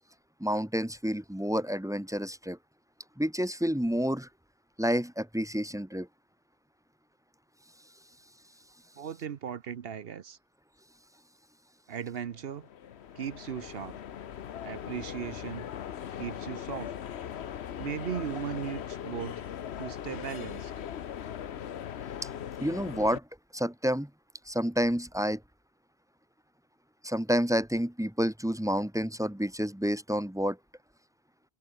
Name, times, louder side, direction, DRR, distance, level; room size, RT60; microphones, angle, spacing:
voice 1, 0.4-2.6 3.2-4.3 4.8-6.1 22.6-23.2 23.5-24.1 24.5-25.4 27.0-30.6, equal, 5° right, 0.8 m, -29 dB
voice 2, 9.0-10.4 11.9-12.7 13.2-14.0 14.6-15.7 16.2-16.9 17.8-19.4 19.8-20.7, right 8 dB, 65° right, 1.0 m, -37 dB
sound 1, 12.3-23.2, left 9 dB, 85° left, 1.1 m, -40 dB
omnidirectional pair, 1.1 m